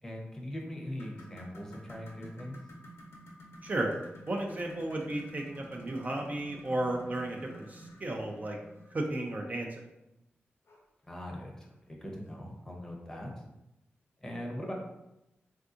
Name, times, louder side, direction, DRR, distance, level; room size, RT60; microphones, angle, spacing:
voice 1, 0.0-2.6 11.0-13.4 14.2-14.7, left 1 dB, 15° left, -1 dB, 0.7 m, -41 dB
sound 1, 0.8-9.3 10.7-10.8 11.3-11.4 12.0-12.1, equal, 90° left, 0.7 m, -51 dB
voice 2, 3.6-3.9 4.3-8.6 8.9-9.8, right 1 dB, 40° right, 0 dB, 0.4 m, -34 dB
3.5 x 2.6 x 2.4 m, 0.91 s
cardioid pair, 80°, 4 cm